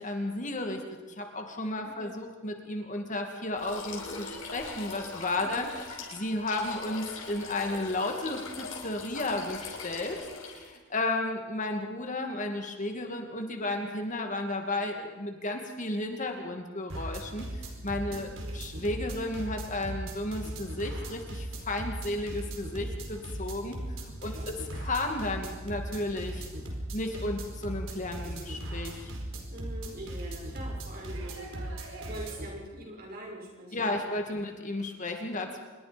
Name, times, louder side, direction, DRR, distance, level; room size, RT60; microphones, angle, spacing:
voice 1, 0.0-10.2 10.4-23.8 24.0-24.3 24.7-26.5 26.9-29.1 33.7-35.6, left 2 dB, 40° left, 4 dB, 2.4 m, -33 dB
voice 2, 1.8-2.2 5.4-5.7 18.1-18.6 24.3-24.6 29.5-34.1 34.9-35.0, right 1 dB, 50° right, -1 dB, 6.5 m, -44 dB
sound 1, 3.6-10.8, left 4 dB, 80° left, 6.2 m, -41 dB
sound 2, 16.9-32.5, right 1 dB, 80° right, 4.5 m, -38 dB
26.5 x 22.0 x 5.3 m, 1.3 s
head